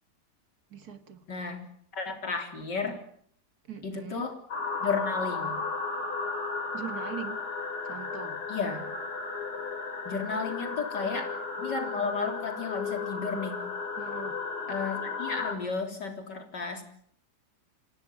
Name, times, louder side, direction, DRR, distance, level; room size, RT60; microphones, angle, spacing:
voice 1, 0.7-1.3 3.6-4.3 6.7-7.4 7.8-8.4 14.0-14.4, right 7 dB, 60° right, 10 dB, 2.3 m, -41 dB
voice 2, 1.3-1.6 1.9-3.0 3.8-4.4 4.8-5.6 8.5-8.9 10.1-13.6 14.7-16.8, left 4 dB, 85° left, 6 dB, 4.2 m, -33 dB
sound 1, 4.5-15.5, left 4 dB, 65° left, 5.2 m, -34 dB
26.0 x 17.5 x 9.7 m, 0.67 s
omnidirectional pair, 1.8 m